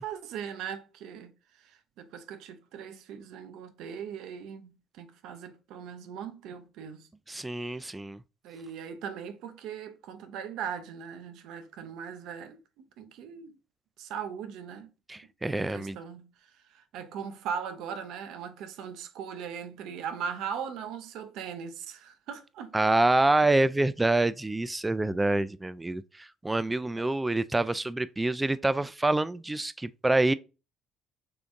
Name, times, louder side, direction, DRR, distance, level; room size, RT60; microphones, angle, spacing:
voice 1, 0.0-1.3 1.6-7.1 7.7-7.8 8.4-13.6 14.0-14.9 15.4-16.3 16.7-22.7, right 7 dB, 65° right, 0.5 m, -39 dB
voice 2, 7.3-8.2 15.1-16.0 22.7-30.3, right 2 dB, 15° right, 0.3 m, -26 dB
3.7 x 3.4 x 2.5 m
figure-of-eight pair, 55°, 0 cm